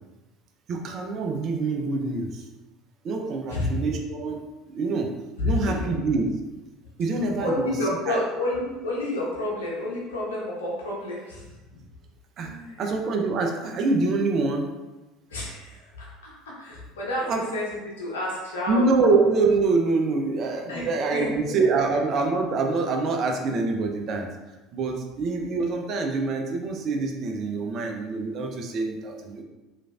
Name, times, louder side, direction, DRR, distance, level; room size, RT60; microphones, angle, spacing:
voice 1, 0.7-2.4 3.0-4.4 4.7-5.1 5.4-6.3 7.0-7.7 8.1-8.2 12.4-12.5 12.8-14.7 17.3-17.4 18.7-24.3 24.7-29.4, right 3 dB, 50° right, 3 dB, 0.5 m, -25 dB
voice 2, 5.4-5.8 7.4-11.5 12.4-12.8 15.3-18.9 20.7-21.5, left 1 dB, 80° left, -5 dB, 0.8 m, -30 dB
3.1 x 2.4 x 2.3 m, 1.1 s
hypercardioid pair, 70°, 0 cm